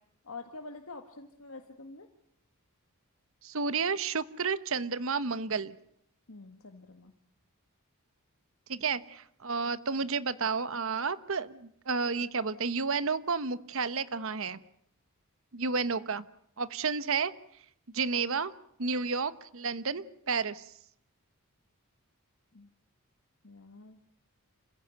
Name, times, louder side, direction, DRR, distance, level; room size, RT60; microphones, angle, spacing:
voice 1, 0.2-2.1 6.3-7.1 22.5-22.7 23.4-24.0, left 3 dB, 70° left, 6 dB, 1.7 m, -46 dB
voice 2, 3.4-5.7 8.7-14.6 15.5-16.3 16.6-17.3 17.9-18.5 18.8-20.7, right 5 dB, 65° right, 15 dB, 1.1 m, -31 dB
27.5 x 16.0 x 9.1 m, 0.70 s
head